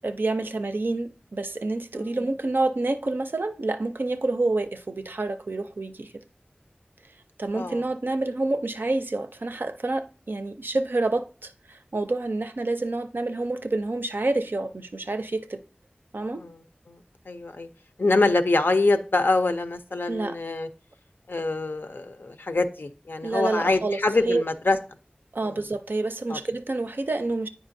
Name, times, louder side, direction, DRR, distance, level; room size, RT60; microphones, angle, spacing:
voice 1, 0.0-6.1 7.4-15.6 16.1-16.4 20.1-20.4 23.2-24.0 24.3-24.4 25.3-27.5, right 2 dB, 80° right, 0.4 m, -28 dB
voice 2, 2.0-2.3 7.5-7.8 16.3-16.6 16.9-17.7 18.0-20.7 21.3-24.8 25.4-25.6 26.3-26.4, left 2 dB, 90° left, 0.5 m, -25 dB
8.9 x 4.8 x 2.6 m
wide cardioid pair, 45°, 3 cm